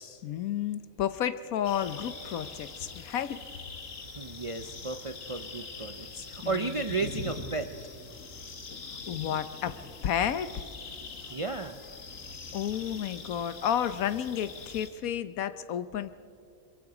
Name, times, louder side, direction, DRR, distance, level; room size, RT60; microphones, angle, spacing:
voice 1, 0.2-3.4 6.4-6.8 9.1-9.8 10.0-10.6 12.5-16.1, left 9 dB, 85° left, 13 dB, 1.3 m, -31 dB
sound 1, 1.6-14.9, left 4 dB, 70° left, 1.8 m, -43 dB
voice 2, 4.2-7.7 11.3-11.8, right 3 dB, 45° right, 7 dB, 0.4 m, -34 dB
26.5 x 23.5 x 4.9 m, 2.4 s
omnidirectional pair, 1.4 m